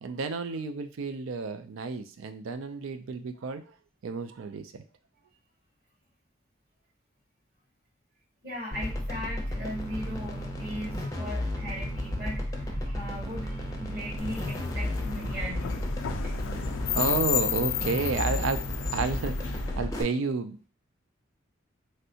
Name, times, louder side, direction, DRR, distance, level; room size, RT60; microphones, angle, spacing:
voice 1, 0.0-3.7 4.0-4.8 16.5-18.6 18.9-20.7, right 4 dB, 85° right, 9 dB, 0.4 m, -31 dB
voice 2, 8.4-15.8 16.2-16.4, equal, 50° right, -6 dB, 1.6 m, -38 dB
sound 1, 8.7-20.0, left 1 dB, 15° left, 0.4 m, -34 dB
sound 2, 9.7-17.3, equal, 15° right, 0.7 m, -44 dB
sound 3, 14.2-19.8, left 9 dB, 80° left, 0.3 m, -32 dB
3.2 x 2.6 x 2.7 m, 0.37 s
head